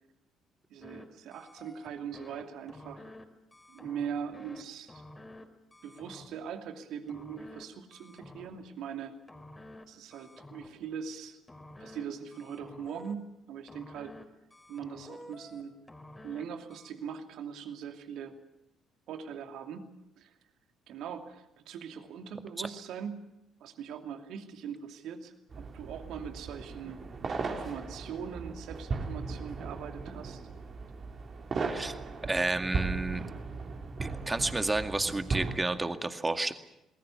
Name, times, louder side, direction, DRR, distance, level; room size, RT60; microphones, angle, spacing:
voice 1, 0.7-3.1 3.7-5.0 5.8-9.1 9.9-11.4 11.8-14.1 14.7-15.7 16.2-18.4 19.1-19.9 20.2-20.3 20.9-23.2 23.6-25.3 25.7-27.0 27.5-30.4, right 7 dB, 60° right, 6 dB, 2.6 m, -41 dB
sound 1, 0.8-1.0 1.3-2.4 2.7-3.2 3.5-4.6 4.9-5.4 5.7-6.5 7.1-7.6 7.9-8.7 9.3-9.8 10.1-10.9 11.5-12.0 12.3-13.1 13.7-14.2 14.5-15.6 15.9-16.4 16.7-16.9, left 1 dB, 20° left, 4.3 m, -50 dB
sound 2, 25.5-35.6, right 4 dB, 45° right, 4.0 m, -37 dB
voice 2, 32.3-33.2 34.0-36.5, right 2 dB, 20° right, 8 dB, 2.1 m, -31 dB
28.0 x 20.5 x 7.1 m, 0.89 s
figure-of-eight pair, 50°, 0 cm